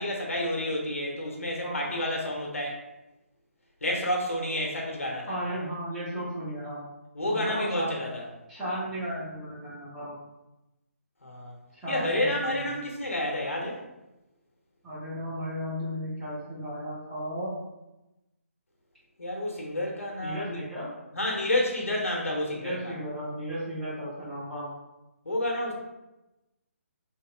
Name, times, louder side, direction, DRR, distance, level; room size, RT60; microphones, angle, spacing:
voice 1, 0.0-2.8 3.8-5.3 7.1-8.2 11.2-11.6 11.9-13.8 19.2-20.6 21.1-22.9 25.2-25.7, left 1 dB, 70° left, -1 dB, 0.6 m, -30 dB
voice 2, 1.6-2.1 5.3-6.8 7.2-7.9 8.5-10.1 11.8-12.6 14.8-17.5 20.2-20.9 22.6-24.7, equal, 5° right, -11 dB, 0.6 m, -34 dB
2.9 x 2.8 x 2.3 m, 0.99 s
figure-of-eight pair, 140°, 8 cm